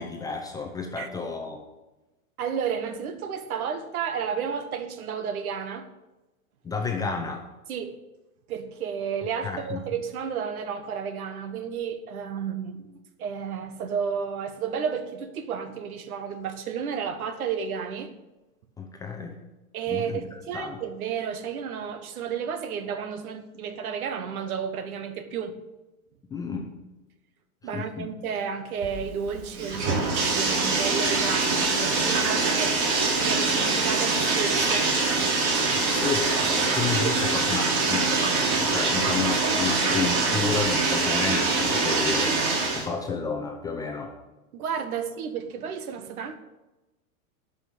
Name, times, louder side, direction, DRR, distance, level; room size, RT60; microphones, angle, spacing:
voice 1, 0.0-1.6 6.6-7.4 9.4-9.8 18.8-19.4 19.9-20.2 20.5-20.8 26.3-26.8 27.7-28.1 35.7-42.4 42.7-44.1, left 5 dB, 10° left, 0.5 m, -31 dB
voice 2, 2.4-5.9 7.7-8.0 8.5-18.1 19.7-25.6 27.6-35.0 37.0-37.2 44.5-46.4, right 7 dB, 80° right, 1.5 m, -32 dB
Bathtub (filling or washing), 28.8-42.9, right 3 dB, 45° right, 3.1 m, -24 dB
11.5 x 5.6 x 8.6 m
supercardioid pair, 150°, 43 cm